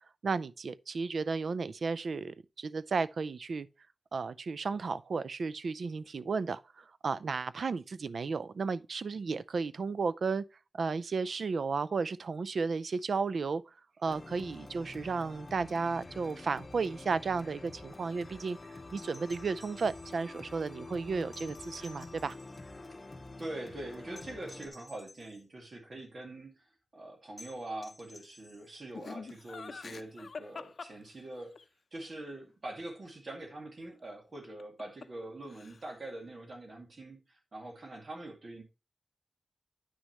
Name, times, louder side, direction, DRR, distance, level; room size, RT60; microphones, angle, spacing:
voice 1, 0.2-3.7 4.1-10.4 10.8-13.6 14.0-18.6 18.9-22.4, right 4 dB, 80° right, 0.4 m, -33 dB
sound 1, 14.0-24.7, left 2 dB, 40° left, 2.4 m, -47 dB
sound 2, 18.9-20.2 21.3-22.8 24.1-25.4 27.4-28.8 30.6-30.7, left 1 dB, 5° left, 1.7 m, -55 dB
voice 2, 23.4-26.7 26.9-31.5 31.9-38.6, right 1 dB, 55° right, 2.3 m, -44 dB
Laughter, 28.9-31.6 34.4-35.2 35.5-36.1, left 4 dB, 70° left, 0.5 m, -45 dB
9.5 x 6.3 x 3.0 m
wide cardioid pair, 90°, 0 cm